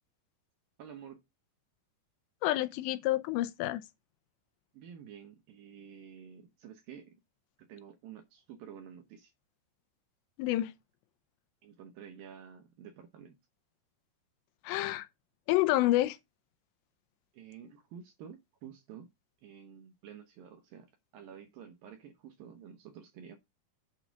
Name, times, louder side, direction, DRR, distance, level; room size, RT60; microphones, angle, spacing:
voice 1, 0.8-1.3 4.7-7.2 7.6-9.3 11.6-13.4 17.3-19.1 19.4-23.4, right 8 dB, 70° right, 2.3 m, -50 dB
voice 2, 2.4-3.8 10.4-10.7 14.6-15.1 15.5-16.2, left 16 dB, 80° left, 2.8 m, -28 dB
8.7 x 3.8 x 6.9 m
omnidirectional pair, 5.1 m